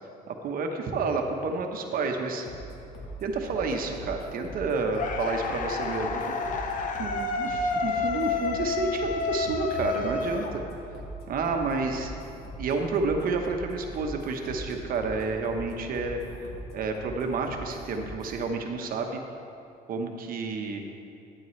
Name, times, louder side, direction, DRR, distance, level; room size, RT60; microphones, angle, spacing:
voice 1, 0.3-2.4 3.2-6.2 6.6-10.6 11.3-12.1 12.6-16.2 16.7-19.2 19.9-20.8, right 4 dB, 60° right, 3 dB, 1.1 m, -30 dB
sound 1, 2.4-18.4, equal, 75° left, 1.9 m, -42 dB
sound 2, 4.9-11.0, left 4 dB, 50° left, 0.9 m, -30 dB
12.5 x 9.1 x 3.2 m, 2.7 s
cardioid pair, 110°, 17 cm